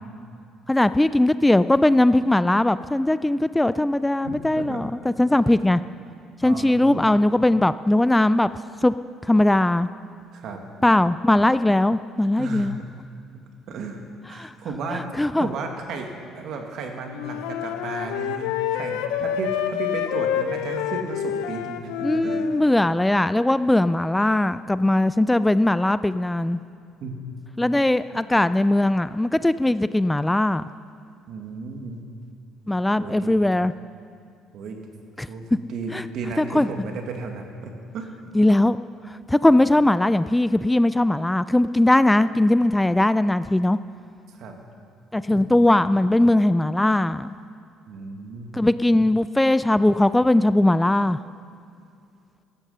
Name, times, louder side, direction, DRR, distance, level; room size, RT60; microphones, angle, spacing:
voice 1, 0.7-5.8 6.4-8.5 8.8-8.9 9.2-9.9 10.8-12.8 14.4-14.5 14.9-15.5 22.0-26.6 27.6-30.6 32.7-33.7 35.2-35.3 35.9-36.0 36.4-36.7 38.3-38.8 39.1-43.8 45.1-47.3 48.5-51.2, left 1 dB, 10° left, 14 dB, 0.4 m, -20 dB
voice 2, 4.2-4.8 5.8-5.9 6.4-7.0 10.3-10.6 12.4-12.9 13.7-14.0 14.3-15.1 15.4-22.5 27.0-27.2 28.1-28.2 31.3-32.0 33.0-33.3 34.5-34.8 35.3-38.1 44.3-44.5 45.3-45.4 47.9-48.5, right 3 dB, 65° right, 3 dB, 2.1 m, -34 dB
Wind instrument woodwind instrument, 17.1-22.7, left 10 dB, 90° left, 0.7 m, -28 dB
15.5 x 12.0 x 5.6 m, 2.4 s
supercardioid pair, 85°, 0 cm